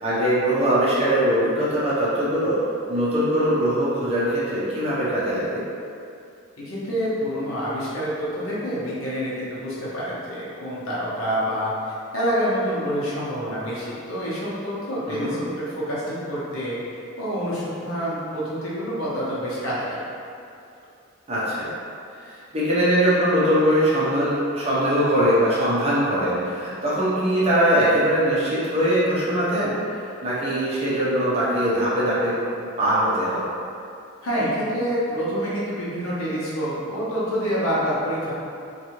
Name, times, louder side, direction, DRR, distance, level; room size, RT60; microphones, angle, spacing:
voice 1, 0.0-2.6 2.9-5.6 15.1-15.4 21.3-21.7 22.2-33.5, equal, 30° right, -9 dB, 0.6 m, -22 dB
voice 2, 6.6-16.8 17.2-20.0 34.2-38.3, equal, 70° left, -8 dB, 0.8 m, -27 dB
2.6 x 2.4 x 2.9 m, 2.5 s
head